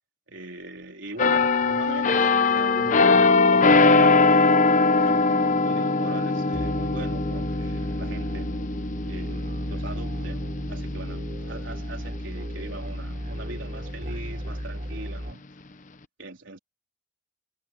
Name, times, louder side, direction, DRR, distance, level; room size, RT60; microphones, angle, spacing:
voice 1, 0.3-4.6 5.0-8.5 9.1-15.4 16.2-16.6, right 2 dB, 65° right, 4.3 m, -41 dB
sound 1, 1.2-12.7 13.2-13.4, left 3 dB, 40° left, 0.9 m, -22 dB
sound 2, 6.5-15.3, equal, 40° right, 4.5 m, -34 dB
head